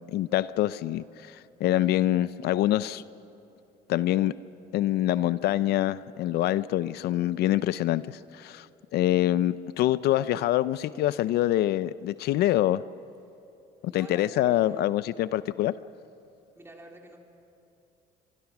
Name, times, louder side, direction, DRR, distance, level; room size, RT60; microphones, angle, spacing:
voice 1, 0.1-3.0 3.9-4.3 4.7-8.7 8.9-12.8 13.9-15.7, left 14 dB, 75° left, 16 dB, 0.5 m, -25 dB
voice 2, 13.9-15.0 16.6-17.2, right 1 dB, 15° right, 1 dB, 3.5 m, -47 dB
24.5 x 24.0 x 6.0 m, 2.8 s
cardioid pair, 110°, 17 cm